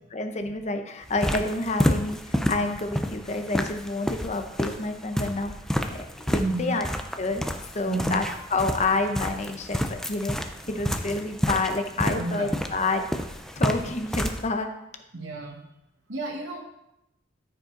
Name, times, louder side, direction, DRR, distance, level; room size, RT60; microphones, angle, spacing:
voice 1, 0.1-5.5 5.8-6.9 7.2-7.4 7.7-8.2 8.5-10.4 10.7-13.1 13.6-14.7, left 3 dB, 35° left, 6 dB, 0.8 m, -28 dB
sound 1, 1.0-14.4, equal, ahead, 0.5 m, -30 dB
voice 2, 6.4-6.7 7.9-8.2 10.7-10.8 12.0-12.8 15.1-15.6 16.1-16.6, right 2 dB, 65° right, -1 dB, 1.5 m, -32 dB
13.5 x 5.3 x 3.8 m, 0.85 s
head